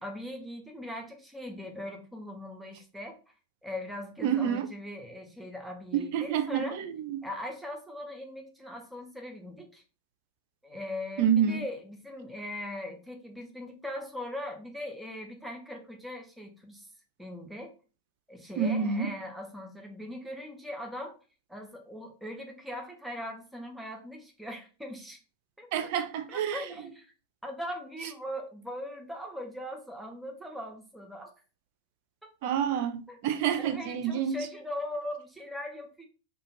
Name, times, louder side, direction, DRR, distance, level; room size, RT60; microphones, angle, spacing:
voice 1, 0.0-3.2 3.6-6.8 7.2-9.8 10.6-16.9 17.2-17.7 18.3-21.2 21.5-25.2 25.6-25.9 26.3-27.1 27.4-31.3 33.1-33.2 33.6-36.0, left 1 dB, 5° right, 0.6 m, -40 dB
voice 2, 4.2-4.7 5.9-7.2 11.2-11.6 18.6-19.1 25.7-26.6 32.4-34.4, right 8 dB, 50° right, 0.4 m, -28 dB
2.4 x 2.2 x 3.0 m
figure-of-eight pair, 90°, 0 cm